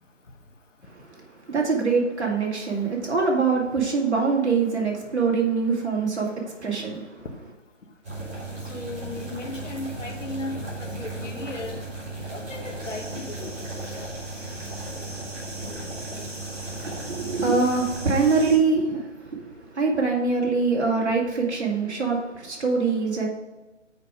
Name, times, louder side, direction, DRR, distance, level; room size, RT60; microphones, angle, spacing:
voice 1, 1.5-7.2 16.5-23.3, right 4 dB, 60° right, -2 dB, 2.5 m, -24 dB
sound 1, 8.0-18.5, right 2 dB, 10° right, 2.3 m, -36 dB
voice 2, 8.7-11.8 12.3-14.1, left 2 dB, 80° left, 3 dB, 1.7 m, -36 dB
sound 2, 12.8-18.6, right 1 dB, 30° right, 2.0 m, -42 dB
7.3 x 5.4 x 4.9 m, 1.1 s
hypercardioid pair, 180°, 37 cm